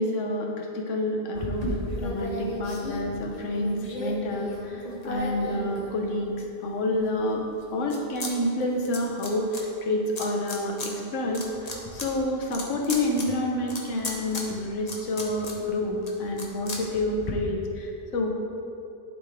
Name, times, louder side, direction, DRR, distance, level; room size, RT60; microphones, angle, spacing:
voice 1, 0.0-7.4 7.7-18.3, left 1 dB, 80° left, 1 dB, 1.2 m, -28 dB
sound 1, 1.3-6.4 6.9-8.3 8.6-9.6 10.2-10.9 11.2-17.3, left 1 dB, 35° left, 0.9 m, -35 dB
11.5 x 3.9 x 3.5 m, 2.8 s
omnidirectional pair, 1.3 m